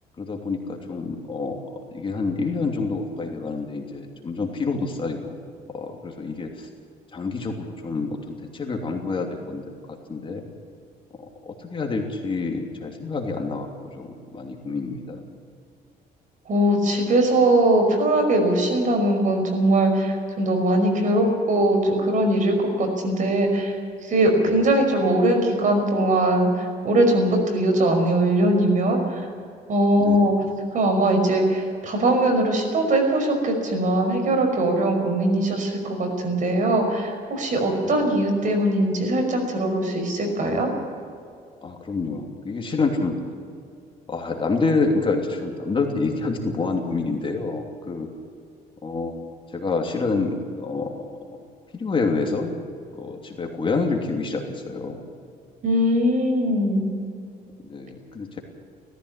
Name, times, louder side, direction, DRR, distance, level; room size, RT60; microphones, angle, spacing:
voice 1, 0.2-1.6 1.9-5.3 5.7-6.5 7.1-8.2 8.5-9.6 10.1-10.4 11.4-13.7 14.0-15.2 24.5-24.7 30.0-30.4 37.8-38.1 41.6-43.2 44.1-48.1 48.8-49.2 49.5-51.1 51.7-52.5 52.9-55.1 57.6-58.4, left 3 dB, 30° left, 2 dB, 3.0 m, -27 dB
voice 2, 16.5-23.7 24.0-26.5 26.8-29.0 29.7-30.3 30.7-40.7 55.6-56.9, right 1 dB, 50° right, 4 dB, 5.6 m, -21 dB
18.0 x 15.0 x 9.7 m, 2.3 s
cardioid pair, 110°, 17 cm